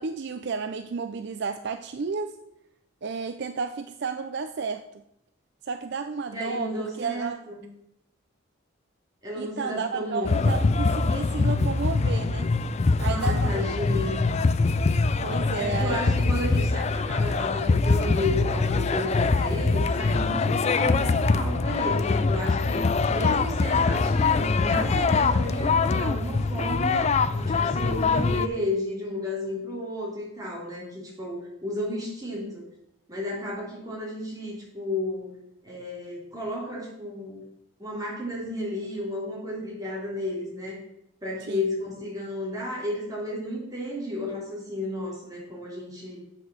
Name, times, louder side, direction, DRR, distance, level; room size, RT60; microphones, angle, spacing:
voice 1, 0.0-2.3 3.0-4.8 5.6-7.4 9.4-12.5 13.0-13.7 14.0-14.2 15.2-16.0 41.5-41.6, right 5 dB, 55° right, 8 dB, 0.5 m, -32 dB
voice 2, 6.3-7.6 9.2-10.5 13.0-14.3 15.5-32.6 33.1-35.4 35.6-37.4 37.8-40.8 41.2-46.2, left 1 dB, 20° right, -5 dB, 3.2 m, -33 dB
sound 1, 10.2-28.5, left 4 dB, 30° left, 0.3 m, -23 dB
7.6 x 6.0 x 6.4 m, 0.78 s
head